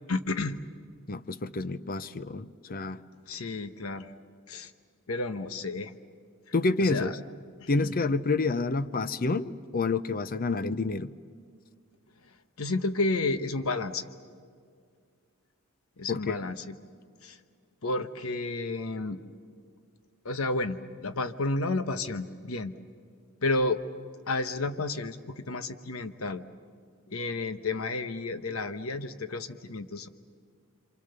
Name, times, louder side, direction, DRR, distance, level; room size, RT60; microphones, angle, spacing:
voice 1, 0.1-0.6 3.3-4.1 4.5-4.7 5.1-5.9 6.8-7.1 7.6-8.0 12.6-14.0 16.0-16.8 17.2-17.4 17.8-19.2 20.2-22.7 23.4-23.8 24.3-26.4 27.1-30.1, left 2 dB, 85° left, 10 dB, 1.1 m, -31 dB
voice 2, 1.1-3.0 6.5-7.2 7.7-11.1 16.1-16.4, left 3 dB, 45° left, 14 dB, 0.7 m, -28 dB
28.0 x 26.5 x 6.8 m, 2.1 s
head